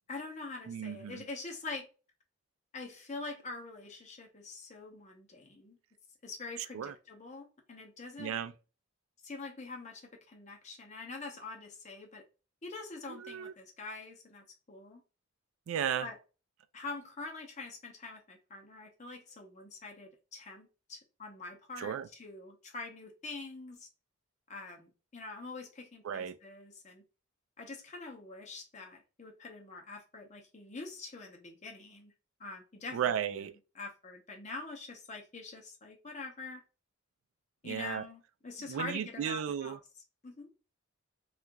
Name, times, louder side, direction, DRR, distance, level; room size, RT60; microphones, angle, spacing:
voice 1, 0.1-1.9 2.7-5.8 6.2-8.3 9.2-12.2 12.6-15.0 16.0-16.2 16.7-23.9 24.5-27.0 27.6-32.1 32.4-33.1 33.7-36.6 37.6-39.8 40.2-40.5, left 3 dB, 35° left, 0.7 m, -45 dB
voice 2, 0.7-1.2 6.7-6.9 8.2-8.5 13.1-13.5 15.7-16.1 21.8-22.1 26.0-26.4 32.9-33.5 37.6-38.0 38.7-39.8, right 8 dB, 75° right, 0.3 m, -35 dB
2.8 x 2.4 x 3.3 m
head